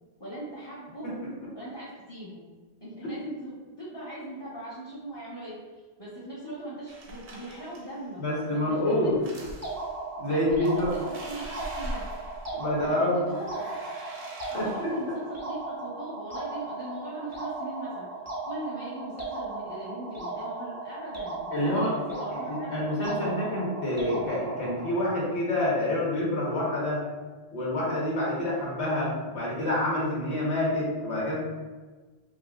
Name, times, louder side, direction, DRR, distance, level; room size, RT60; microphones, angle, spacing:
voice 1, 0.2-1.1 1.5-2.4 2.8-5.5 6.0-8.2 8.5-9.1 10.2-12.1 12.9-13.7 14.5-18.1 18.5-22.8, right 1 dB, 30° left, -8 dB, 0.7 m, -40 dB
sound 1, 6.9-8.0 9.1-10.0 10.5-12.9 13.2-15.1, right 1 dB, 80° right, 0.9 m, -43 dB
voice 2, 8.2-9.2 10.2-10.9 12.5-13.3 14.5-15.1 21.5-27.1 27.5-31.4, left 1 dB, 90° left, -5 dB, 1.4 m, -27 dB
sound 2, 9.6-25.0, right 3 dB, 20° right, 0.5 m, -37 dB
5.1 x 2.1 x 2.3 m, 1.3 s
omnidirectional pair, 1.1 m